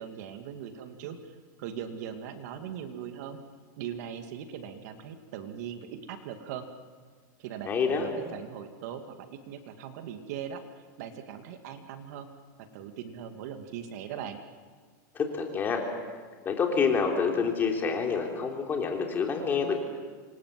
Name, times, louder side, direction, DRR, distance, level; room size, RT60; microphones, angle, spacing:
voice 1, 0.0-3.4 3.8-6.7 7.4-10.6 11.0-12.3 12.7-14.4, right 8 dB, 55° right, 7 dB, 2.4 m, -40 dB
voice 2, 7.7-8.1 15.1-15.8 16.5-19.7, left 5 dB, 20° left, 2 dB, 3.6 m, -27 dB
27.0 x 24.0 x 7.8 m, 1.5 s
supercardioid pair, 155°, 10 cm